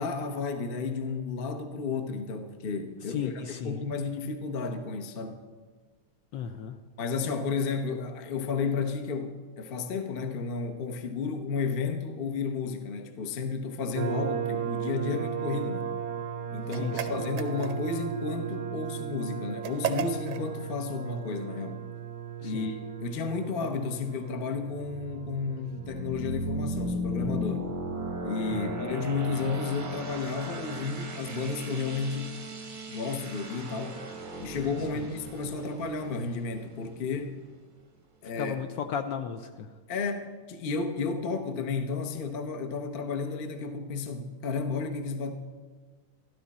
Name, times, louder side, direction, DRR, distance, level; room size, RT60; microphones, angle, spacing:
voice 1, 0.0-5.4 7.0-15.9 16.5-21.8 22.4-27.7 28.2-32.4 32.9-34.0 34.4-37.3 38.2-38.6 39.9-45.3, left 4 dB, 50° left, 6 dB, 0.7 m, -32 dB
voice 2, 3.1-3.8 6.3-6.7 16.7-17.1 22.4-22.7 28.5-28.8 38.4-39.7, left 7 dB, 70° left, 7 dB, 1.2 m, -35 dB
sound 1, 14.0-28.4, right 8 dB, 85° right, 1.5 m, -37 dB
sound 2, 16.7-18.0 19.6-20.5, right 8 dB, 65° right, 1.0 m, -34 dB
sound 3, 24.8-37.4, right 1 dB, 40° right, 0.7 m, -37 dB
13.0 x 12.5 x 4.2 m, 1.4 s
omnidirectional pair, 2.3 m